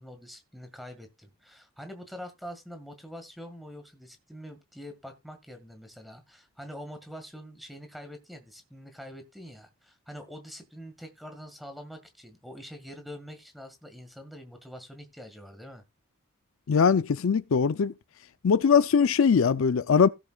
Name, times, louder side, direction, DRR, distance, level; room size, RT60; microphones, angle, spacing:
voice 1, 0.0-15.8, equal, ahead, 1.8 m, -45 dB
voice 2, 16.7-17.9 18.4-20.1, left 6 dB, 70° left, 0.5 m, -21 dB
16.5 x 7.0 x 2.3 m
head